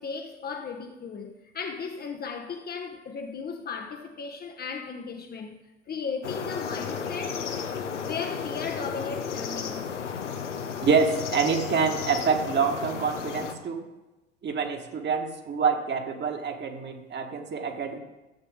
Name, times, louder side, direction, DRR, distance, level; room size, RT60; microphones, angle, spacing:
voice 1, 0.0-5.6 5.9-7.5 8.0-9.9, left 5 dB, 25° left, 1.0 m, -36 dB
sound 1, 6.2-13.5, left 6 dB, 80° left, 1.1 m, -33 dB
voice 2, 10.8-13.8 14.4-18.0, right 5 dB, 30° right, 1.7 m, -26 dB
16.0 x 8.1 x 3.8 m
figure-of-eight pair, 80°, 35 cm